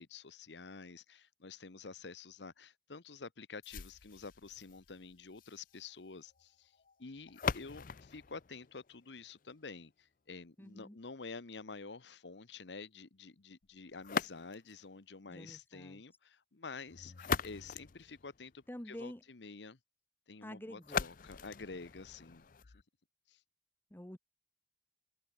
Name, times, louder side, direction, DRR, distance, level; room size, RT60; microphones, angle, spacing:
voice 1, 0.0-6.7 7.0-19.8 20.3-22.5 23.3-23.4, left 4 dB, 75° left, 1.0 m, -49 dB
sound 1, 3.6-9.6 14.0-14.9 16.9-18.8 20.8-22.8, left 6 dB, 50° left, 0.6 m, -41 dB
voice 2, 10.6-11.0 15.3-16.0 18.7-19.2 20.4-21.1 23.9-24.2, equal, 10° left, 1.2 m, -48 dB
head